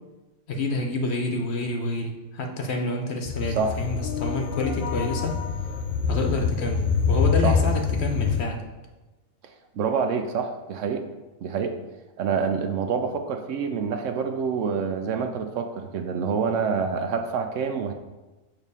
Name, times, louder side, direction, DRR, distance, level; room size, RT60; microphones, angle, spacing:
voice 1, 0.5-5.4 6.1-8.6, left 2 dB, 55° left, 2 dB, 0.9 m, -28 dB
sound 1, 3.3-8.4, left 5 dB, 80° left, 1.1 m, -25 dB
voice 2, 3.5-3.8 7.4-7.6 9.7-11.0 11.4-11.8 12.2-17.9, right 6 dB, 70° right, 6 dB, 0.9 m, -27 dB
6.8 x 3.0 x 5.4 m, 1.1 s
omnidirectional pair, 1.4 m